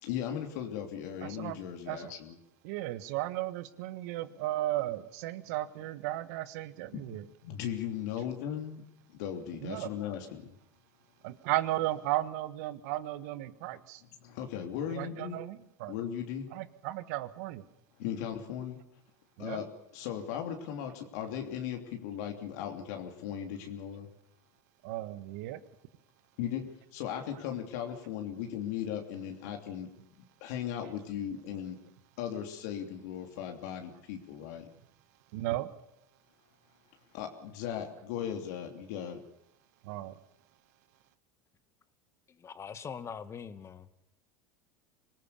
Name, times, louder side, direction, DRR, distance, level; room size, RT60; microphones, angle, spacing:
voice 1, 0.0-2.3 7.4-8.8 9.1-10.5 14.2-15.4 15.9-16.5 18.0-18.8 19.4-19.7 19.9-24.1 26.4-26.7 26.9-29.9 30.4-31.8 32.2-34.6 37.1-39.2, left 9 dB, 70° left, 3.0 m, -37 dB
voice 2, 1.2-2.1 2.6-7.3 9.6-9.9 11.2-14.0 14.9-15.9 16.5-17.6 19.4-19.6 24.8-25.6 35.3-35.7 39.8-40.2, right 15 dB, 70° right, 1.5 m, -35 dB
voice 3, 42.3-43.9, left 7 dB, 30° left, 1.9 m, -42 dB
25.0 x 18.5 x 7.0 m
hypercardioid pair, 90°, 9 cm